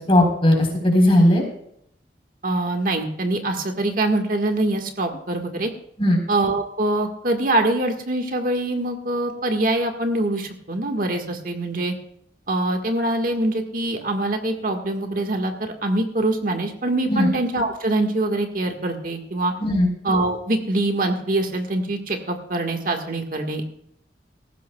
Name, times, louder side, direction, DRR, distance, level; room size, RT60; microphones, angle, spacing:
voice 1, 0.0-1.4 6.0-6.2 17.1-17.3 19.6-19.9, left 1 dB, 30° left, 1 dB, 4.0 m, -17 dB
voice 2, 2.4-5.7 6.3-11.9 12.5-19.5 20.0-23.6, right 2 dB, 50° right, 4 dB, 1.6 m, -24 dB
19.0 x 15.0 x 2.3 m, 0.71 s
head